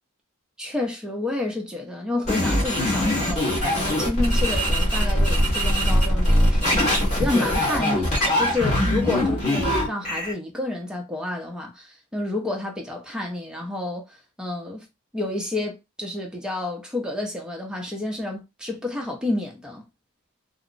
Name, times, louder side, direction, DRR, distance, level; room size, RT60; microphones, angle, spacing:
voice 1, 0.6-14.9 15.1-19.9, left 2 dB, 5° right, 0.5 m, -30 dB
sound 1, 2.3-10.3, left 1 dB, 30° left, 1.3 m, -22 dB
2.9 x 2.0 x 2.5 m
head